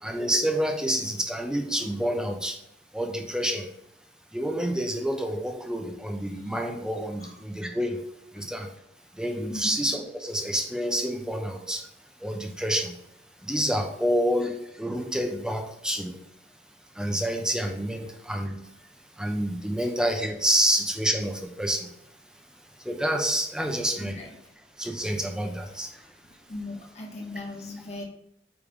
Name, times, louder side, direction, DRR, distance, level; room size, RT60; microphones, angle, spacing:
voice 1, 0.0-2.6 2.9-3.7 4.3-8.0 8.3-8.7 9.1-11.8 12.2-13.0 13.4-16.2 16.9-18.6 19.2-21.9 22.8-24.2 24.8-26.1, equal, 5° right, 3 dB, 1.0 m, -28 dB
voice 2, 26.5-28.1, left 2 dB, 40° left, -1 dB, 1.7 m, -38 dB
8.7 x 3.4 x 5.2 m, 0.76 s
head